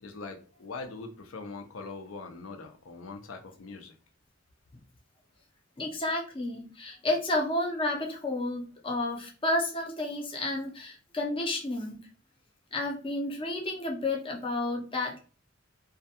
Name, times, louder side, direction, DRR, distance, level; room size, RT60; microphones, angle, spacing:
voice 1, 0.0-4.0, left 3 dB, 85° left, 6 dB, 0.5 m, -42 dB
voice 2, 5.8-12.0 12.7-15.2, left 2 dB, 25° left, 0 dB, 0.5 m, -31 dB
2.3 x 2.2 x 2.7 m, 0.37 s
head